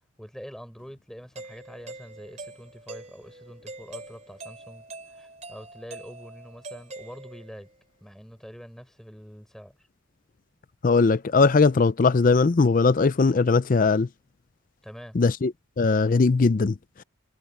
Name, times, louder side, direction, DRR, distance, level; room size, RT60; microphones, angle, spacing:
voice 1, 0.2-7.7 8.0-9.8 14.8-15.2, equal, ahead, 6.3 m, -45 dB
Doorbell, 1.4-7.7, right 2 dB, 35° right, 5.1 m, -44 dB
voice 2, 10.8-14.1 15.2-16.7, left 4 dB, 40° left, 0.4 m, -20 dB
head